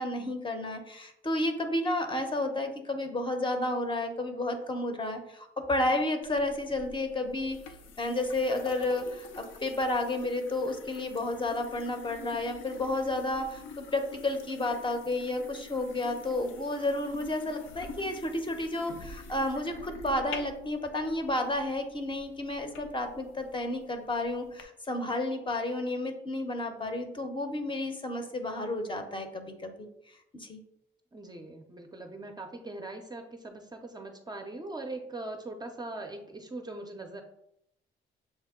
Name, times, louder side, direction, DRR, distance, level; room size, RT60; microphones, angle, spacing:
voice 1, 0.0-7.6 8.0-29.7 30.3-30.6, left 2 dB, 25° left, 6 dB, 0.7 m, -31 dB
sound 1, 6.2-24.6, left 5 dB, 85° left, 0.5 m, -47 dB
voice 2, 31.1-37.2, right 2 dB, 20° right, 4 dB, 0.5 m, -41 dB
6.4 x 2.1 x 3.5 m, 0.79 s
cardioid pair, 90°, 20 cm